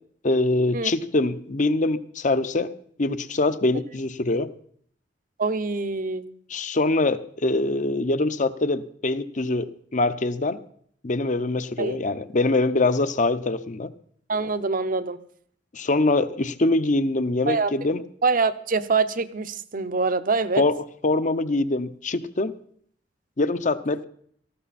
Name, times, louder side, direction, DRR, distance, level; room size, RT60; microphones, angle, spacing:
voice 1, 0.2-2.7 3.0-4.5 6.5-10.6 11.0-13.9 15.7-18.0 20.6-20.8 21.0-22.5 23.4-24.0, left 2 dB, 45° left, 12 dB, 0.8 m, -23 dB
voice 2, 5.4-6.3 11.8-12.0 14.3-15.2 17.5-17.7 18.2-20.6, right 4 dB, 50° right, 12 dB, 0.9 m, -24 dB
18.5 x 14.5 x 4.2 m, 0.62 s
head